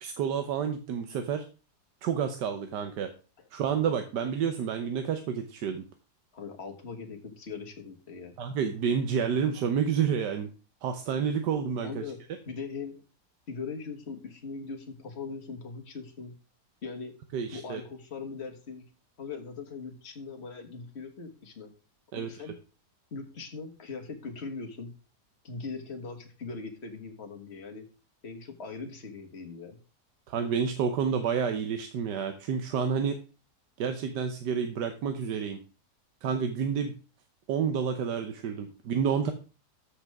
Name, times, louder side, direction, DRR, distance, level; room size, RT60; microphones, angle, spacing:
voice 1, 0.0-1.4 2.0-3.1 3.5-5.8 8.4-10.5 10.8-12.0 17.3-17.8 22.1-22.3 30.3-33.1 33.8-35.6 36.2-36.9 37.5-39.3, right 7 dB, 90° right, 7 dB, 1.5 m, -29 dB
voice 2, 6.3-8.4 11.8-12.2 12.5-13.0 13.5-16.3 16.8-17.1 17.5-18.8 19.2-21.7 22.1-22.5 23.1-24.9 25.4-27.8 28.2-29.8, left 4 dB, 40° left, 3 dB, 1.9 m, -40 dB
13.0 x 6.6 x 3.5 m, 0.34 s
omnidirectional pair, 1.8 m